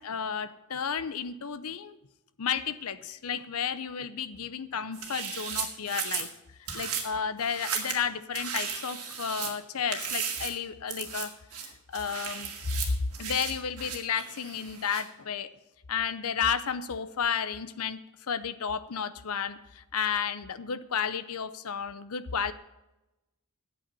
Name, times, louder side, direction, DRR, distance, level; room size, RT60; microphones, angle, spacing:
voice 1, 0.0-2.0 2.4-6.3 6.6-11.3 11.6-15.5 15.9-18.0 18.3-22.5, left 7 dB, 75° left, 14 dB, 0.7 m, -32 dB
sound 1, 4.9-6.3 6.7-7.0 7.4-8.0 8.3-9.5 9.9-10.5 10.9-11.2 11.5-15.0, right 7 dB, 75° right, 2.1 m, -35 dB
8.8 x 8.0 x 8.6 m, 0.99 s
head